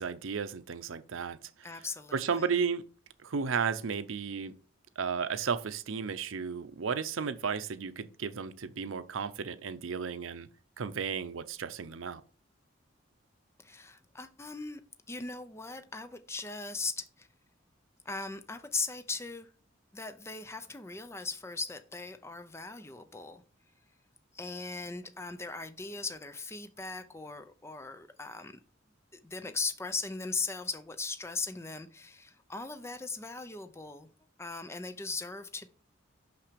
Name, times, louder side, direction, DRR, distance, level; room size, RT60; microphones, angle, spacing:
voice 1, 0.0-1.4 2.1-2.8 3.2-4.5 5.0-10.5 10.8-12.2, right 6 dB, 85° right, 0.6 m, -33 dB
voice 2, 1.6-2.5 13.6-14.8 15.1-17.3 18.0-19.5 19.9-23.4 24.3-28.5 29.1-34.1 34.4-35.7, left 3 dB, 15° left, 0.5 m, -39 dB
5.9 x 5.8 x 5.1 m
head